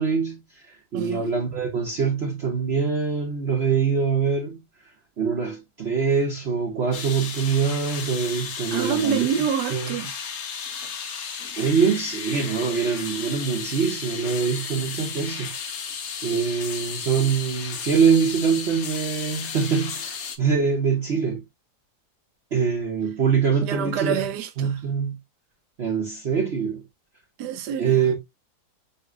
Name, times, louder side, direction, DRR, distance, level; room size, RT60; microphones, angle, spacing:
voice 1, 0.0-4.6 5.2-9.3 9.7-10.0 11.6-15.5 16.2-21.4 22.5-24.3 24.6-25.2 25.8-26.8 27.8-28.1, right 6 dB, 50° right, 0.9 m, -24 dB
voice 2, 0.9-1.3 8.7-10.1 23.6-24.8 27.4-28.0, right 8 dB, 85° right, 1.2 m, -27 dB
sound 1, 6.9-20.4, left 6 dB, 60° left, 0.7 m, -34 dB
6.6 x 2.6 x 2.4 m
omnidirectional pair, 1.8 m